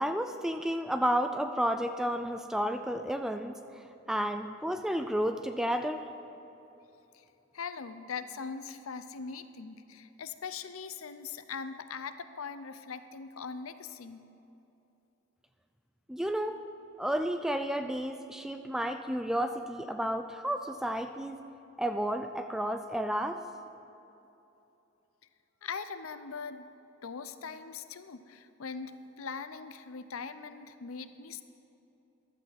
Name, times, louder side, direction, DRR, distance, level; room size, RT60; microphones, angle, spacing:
voice 1, 0.0-3.6 4.1-6.1 16.1-16.6 17.0-21.4 21.8-23.4, equal, 5° right, 7 dB, 0.3 m, -31 dB
voice 2, 7.5-14.2 25.6-26.7 27.0-31.4, left 5 dB, 90° left, 11 dB, 0.6 m, -41 dB
14.5 x 12.0 x 4.2 m, 2.9 s
head